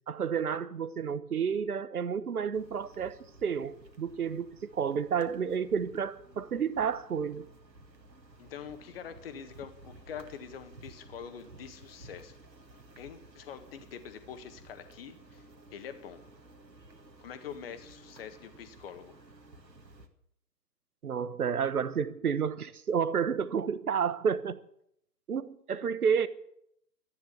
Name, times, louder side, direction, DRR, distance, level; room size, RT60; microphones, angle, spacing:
voice 1, 0.1-3.2 3.4-7.4 21.0-24.6 25.3-26.3, right 7 dB, 60° right, 1.1 m, -30 dB
sound 1, 2.5-20.1, right 2 dB, 80° right, 2.0 m, -55 dB
voice 2, 8.4-12.4 13.0-15.4 15.7-16.2 17.2-19.1, left 7 dB, 35° left, 1.7 m, -45 dB
13.5 x 10.5 x 8.3 m
figure-of-eight pair, 125°, 50 cm